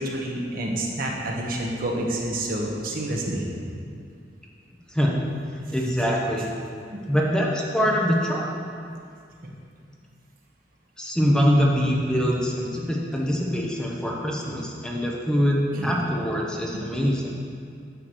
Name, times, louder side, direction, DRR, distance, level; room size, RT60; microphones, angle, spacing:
voice 1, 0.0-3.5 6.9-7.0 9.4-9.5 15.7-15.9 16.7-16.9, right 1 dB, 55° right, -1 dB, 1.2 m, -28 dB
voice 2, 4.9-5.2 5.7-6.5 7.1-8.5 11.0-17.4, equal, 5° left, -3 dB, 1.0 m, -24 dB
10.0 x 4.9 x 6.2 m, 2.3 s
head